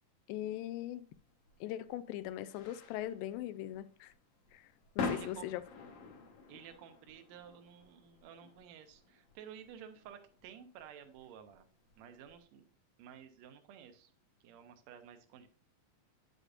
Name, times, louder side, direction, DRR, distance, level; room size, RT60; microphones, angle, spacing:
voice 1, 0.3-1.1 1.6-4.1 4.5-4.7 5.0-5.6, left 13 dB, 90° left, 2.3 m, -40 dB
sound 1, 1.1-12.4, left 4 dB, 60° left, 2.1 m, -46 dB
voice 2, 5.1-5.5 6.5-11.7 12.0-12.7 13.0-14.1 14.4-15.5, right 8 dB, 75° right, 1.7 m, -53 dB
8.9 x 6.6 x 2.5 m
omnidirectional pair, 4.0 m